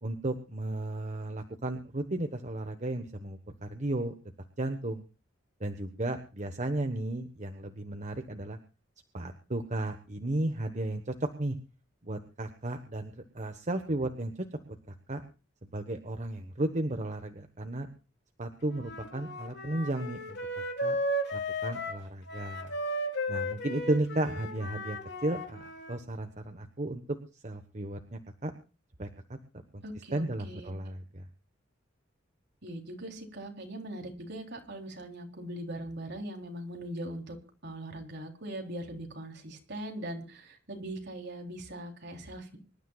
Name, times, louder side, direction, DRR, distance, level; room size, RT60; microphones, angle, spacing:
voice 1, 0.0-4.1 4.6-5.0 5.6-8.6 9.1-11.6 12.0-14.3 14.9-15.2 15.7-17.9 18.4-21.0 21.3-22.7 23.3-27.0 27.4-28.5 29.0-29.1 29.7-29.8 30.1-31.3, right 1 dB, 40° right, 6 dB, 1.3 m, -34 dB
Wind instrument woodwind instrument, 18.7-26.0, equal, 60° left, 3.5 m, -35 dB
voice 2, 29.8-30.7 32.6-37.4 37.6-42.6, right 1 dB, 60° right, 2 dB, 3.8 m, -41 dB
25.5 x 12.5 x 2.4 m, 0.33 s
head